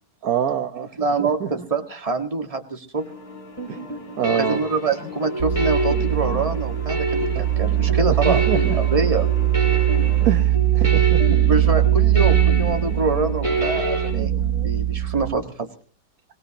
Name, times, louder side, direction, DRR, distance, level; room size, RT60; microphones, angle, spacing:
voice 1, 0.2-1.5 3.7-3.8 4.2-4.6 7.3-7.4 7.9-8.8 10.2-11.4 14.1-14.7, right 8 dB, 60° right, 7 dB, 1.5 m, -26 dB
voice 2, 1.0-3.1 4.3-8.4 8.7-9.3 11.5-14.3 14.6-15.7, right 4 dB, 20° right, 5 dB, 1.7 m, -25 dB
sound 1, 2.9-10.4, left 4 dB, 60° left, 2.7 m, -40 dB
sound 2, 3.6-14.1, right 1 dB, 15° left, 6.3 m, -28 dB
sound 3, 5.4-15.3, right 13 dB, 80° right, 2.2 m, -21 dB
23.5 x 18.5 x 2.9 m, 0.43 s
omnidirectional pair, 1.8 m